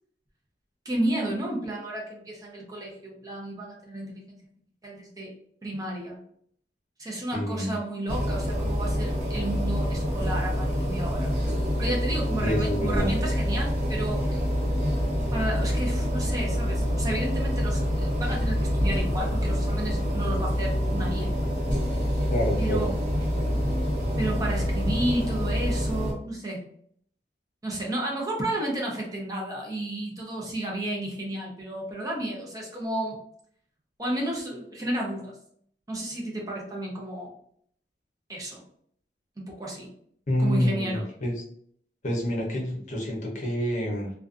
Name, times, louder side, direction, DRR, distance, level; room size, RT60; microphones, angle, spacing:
voice 1, 0.8-4.4 4.8-5.3 5.6-6.2 7.0-11.3 11.8-14.5 15.3-21.3 22.6-22.9 24.2-26.6 27.6-33.2 34.0-35.4 35.9-37.3 38.3-38.6 39.4-39.9 40.4-41.0, right 1 dB, 20° right, -2 dB, 0.5 m, -32 dB
voice 2, 7.3-7.8 12.4-13.1 22.3-22.9 40.3-41.4 42.0-44.1, equal, 45° left, -1 dB, 0.7 m, -27 dB
sound 1, 8.1-26.1, equal, 45° right, 0.9 m, -26 dB
2.5 x 2.2 x 2.4 m, 0.63 s
head